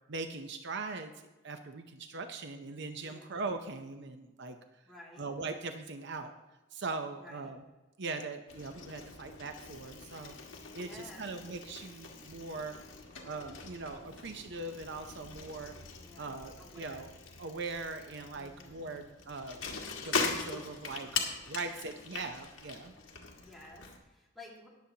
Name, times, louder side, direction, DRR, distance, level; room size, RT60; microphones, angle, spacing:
voice 1, 0.1-1.1 1.4-4.6 5.2-6.3 6.7-7.6 8.0-10.3 10.7-12.8 13.2-15.7 16.2-17.1 17.4-19.6 20.0-21.1 21.5-22.9, right 3 dB, 60° right, 7 dB, 0.7 m, -40 dB
voice 2, 3.0-3.3 4.8-5.3 7.2-7.5 10.7-11.3 16.0-17.1 18.3-19.0 21.1-22.0 23.4-24.7, left 1 dB, ahead, -5 dB, 2.3 m, -54 dB
Bicycle, 8.5-24.0, left 4 dB, 65° left, 1.7 m, -41 dB
19.5 x 7.5 x 2.8 m, 1.1 s
head